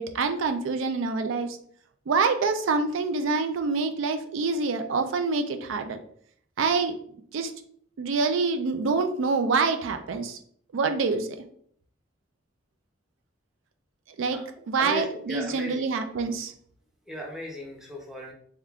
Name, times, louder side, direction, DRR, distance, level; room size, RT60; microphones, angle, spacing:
voice 1, 0.0-1.6 2.1-6.0 6.6-6.9 7.3-7.5 8.0-10.4 10.7-11.3 14.2-14.4 14.7-16.5, right 4 dB, 85° right, 8 dB, 0.4 m, -26 dB
voice 2, 14.8-15.9 17.1-18.3, left 1 dB, ahead, -1 dB, 0.6 m, -36 dB
3.5 x 3.3 x 2.3 m, 0.62 s
head